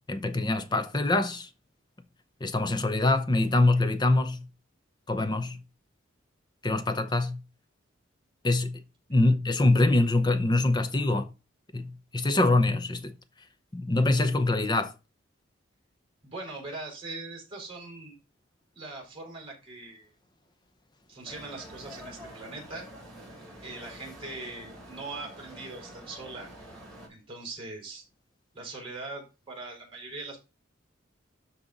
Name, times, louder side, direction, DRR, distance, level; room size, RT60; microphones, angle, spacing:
voice 1, 0.1-1.5 2.4-4.4 5.1-5.6 6.6-7.4 8.4-8.8 9.1-11.3 11.7-13.1 13.7-14.9, left 2 dB, 20° left, 0.7 m, -24 dB
voice 2, 16.2-18.1 18.7-20.1 21.1-22.9 23.6-26.5 27.1-28.0 28.5-30.4, right 2 dB, 25° right, 4.3 m, -41 dB
sound 1, 21.2-27.1, right 1 dB, ahead, 3.7 m, -47 dB
12.5 x 4.2 x 3.9 m
head